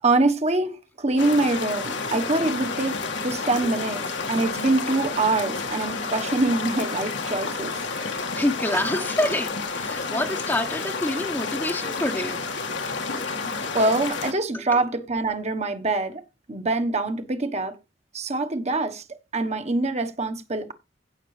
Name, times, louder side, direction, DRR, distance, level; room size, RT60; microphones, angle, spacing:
voice 1, 0.0-7.8 13.2-16.2 16.5-17.7 18.1-19.0 19.3-20.7, right 2 dB, 40° right, 1.2 m, -25 dB
sound 1, 1.2-14.3, left 4 dB, 80° left, 1.8 m, -30 dB
voice 2, 8.0-12.4, left 1 dB, 15° left, 0.9 m, -27 dB
16.5 x 5.9 x 3.3 m
head